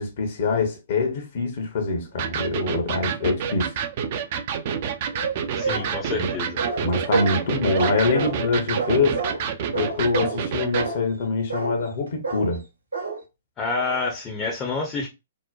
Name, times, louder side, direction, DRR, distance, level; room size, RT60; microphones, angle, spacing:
voice 1, 0.0-3.7 6.2-6.3 6.8-9.2 9.7-12.6, left 4 dB, 50° left, 0.8 m, -24 dB
Electric guitar, 2.2-10.9, right 7 dB, 45° right, 0.4 m, -29 dB
sound 1, 5.1-5.9 6.6-7.4 7.7-8.4 8.8-9.4 9.7-10.4 10.7-11.0 11.5-11.9 12.2-12.6 12.9-13.2, right 4 dB, 80° right, 1.0 m, -28 dB
voice 2, 5.6-6.6 13.6-15.1, left 3 dB, 20° left, 0.6 m, -28 dB
2.9 x 2.1 x 2.2 m
figure-of-eight pair, 120°, 0 cm